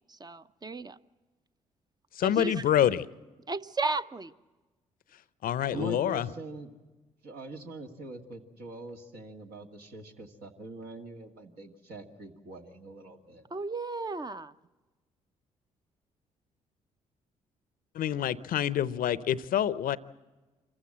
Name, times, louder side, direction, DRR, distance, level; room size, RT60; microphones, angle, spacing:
voice 1, 0.1-1.0 2.2-2.6 3.5-4.3 13.5-14.5, right 3 dB, 25° right, 12 dB, 0.8 m, -34 dB
voice 2, 2.2-3.0 5.4-6.3 18.0-20.0, left 10 dB, 60° left, 18 dB, 0.7 m, -27 dB
voice 3, 5.7-6.7 7.2-13.5, right 2 dB, 65° right, 2 dB, 2.1 m, -43 dB
26.0 x 15.0 x 7.8 m, 1.2 s
hypercardioid pair, 45°, 17 cm